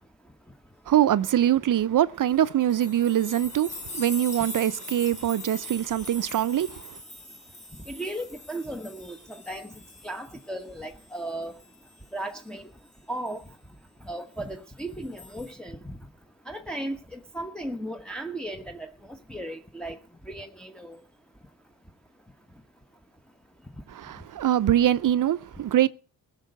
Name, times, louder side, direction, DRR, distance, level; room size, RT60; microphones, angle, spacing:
voice 1, 0.9-7.0 23.9-25.9, right 11 dB, 60° right, 0.6 m, -23 dB
sound 1, 2.3-10.6 11.0-12.0 13.3-13.4 14.8-15.5, left 2 dB, 20° left, 3.8 m, -42 dB
voice 2, 7.9-9.7 10.0-11.5 12.1-12.6 13.1-13.4 14.1-15.9 16.5-18.9 19.3-20.0 20.3-21.0, right 1 dB, ahead, 1.1 m, -36 dB
16.0 x 6.8 x 8.0 m
cardioid pair, 80°, 36 cm